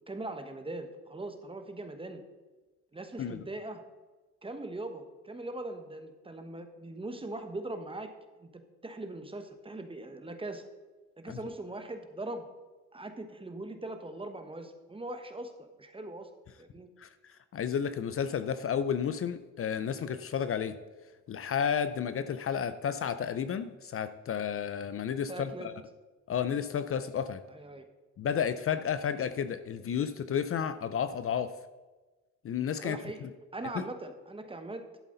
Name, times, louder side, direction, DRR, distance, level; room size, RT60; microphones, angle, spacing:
voice 1, 0.1-2.2 2.9-3.8 4.4-8.1 8.4-10.7 11.2-12.4 12.9-16.3 16.6-16.9 25.3-25.7 27.5-27.8 32.8-33.3 33.5-34.9, right 2 dB, 20° right, 7 dB, 1.2 m, -41 dB
voice 2, 17.0-20.8 21.3-25.7 26.3-27.4 28.2-31.5 32.4-33.3 33.7-33.9, left 8 dB, 45° left, 12 dB, 0.6 m, -32 dB
11.5 x 8.0 x 4.0 m, 1.2 s
cardioid pair, 90°, 30 cm